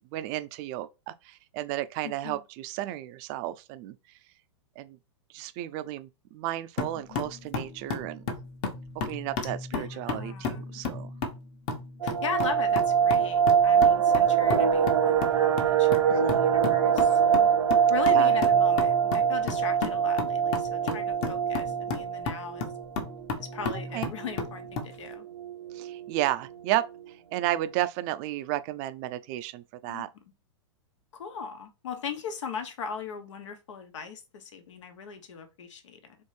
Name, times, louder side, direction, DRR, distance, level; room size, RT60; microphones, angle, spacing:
voice 1, 0.1-3.9 4.8-5.0 5.3-8.2 9.1-11.1 16.1-16.4 18.1-18.3 23.6-24.1 25.7-30.1, right 14 dB, 40° right, 0.5 m, -33 dB
voice 2, 2.0-2.4 6.9-7.2 9.4-10.8 12.0-17.5 17.9-22.7 23.4-25.2 29.8-30.1 31.1-36.2, left 6 dB, 75° left, 1.2 m, -39 dB
sound 1, 6.8-24.9, left 4 dB, 35° left, 1.1 m, -34 dB
sound 2, 12.0-22.8 23.1-23.2 23.5-23.7 24.2-24.6 25.1-25.2 25.4-25.9 26.2-26.3, right 7 dB, 90° right, 0.8 m, -23 dB
4.3 x 3.1 x 3.3 m
hypercardioid pair, 125°, 16 cm